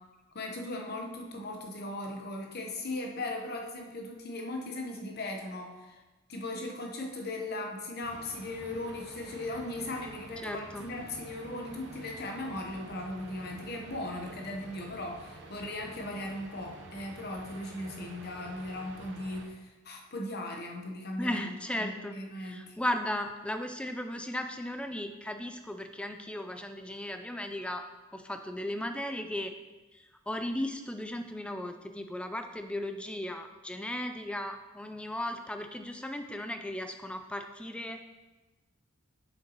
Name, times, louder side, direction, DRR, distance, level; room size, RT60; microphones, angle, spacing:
voice 1, 0.3-6.0 6.3-21.5 21.8-22.8, left 2 dB, 50° left, 2 dB, 1.0 m, -38 dB
sound 1, 8.0-19.5, right 2 dB, 55° right, 0.9 m, -49 dB
voice 2, 10.4-10.9 21.2-27.9 28.1-29.5 29.9-38.1, left 1 dB, 5° left, 7 dB, 0.3 m, -36 dB
7.9 x 6.6 x 3.0 m, 1.2 s
head